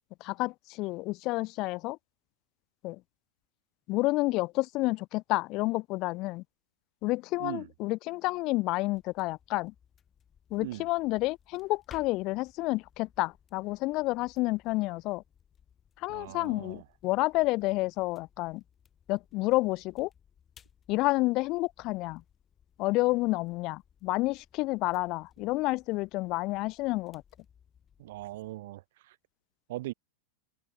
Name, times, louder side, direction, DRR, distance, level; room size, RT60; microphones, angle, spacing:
voice 1, 0.2-2.0 2.8-3.0 3.9-6.4 7.0-9.7 10.5-15.2 16.0-18.6 19.1-20.1 20.9-22.2 22.8-27.2, left 21 dB, 40° left, 0.4 m, -30 dB
sound 1, 8.9-28.6, left 8 dB, 25° left, 4.4 m, -61 dB
voice 2, 16.1-16.8 28.0-28.8 29.1-29.2 29.7-29.9, right 17 dB, 55° right, 0.3 m, -39 dB
figure-of-eight pair, 90°, 0 cm